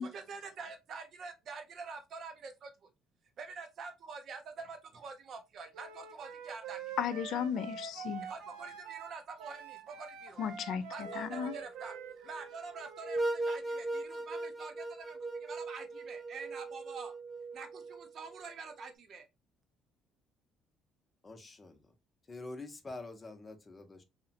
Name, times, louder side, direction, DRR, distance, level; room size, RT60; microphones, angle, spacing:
voice 1, 0.0-2.9 3.4-6.8 8.3-10.4 10.9-17.1 17.5-19.3, right 4 dB, 55° right, 0.7 m, -46 dB
Wind instrument woodwind instrument, 5.7-13.3, right 7 dB, 85° right, 0.4 m, -46 dB
voice 2, 7.0-8.3 10.4-11.5, left 8 dB, 70° left, 0.3 m, -35 dB
sound 1, 11.0-18.4, right 2 dB, 10° right, 0.6 m, -39 dB
voice 3, 21.2-21.9 22.3-24.0, left 2 dB, 25° left, 0.6 m, -46 dB
2.7 x 2.1 x 2.7 m
supercardioid pair, 85°, 0 cm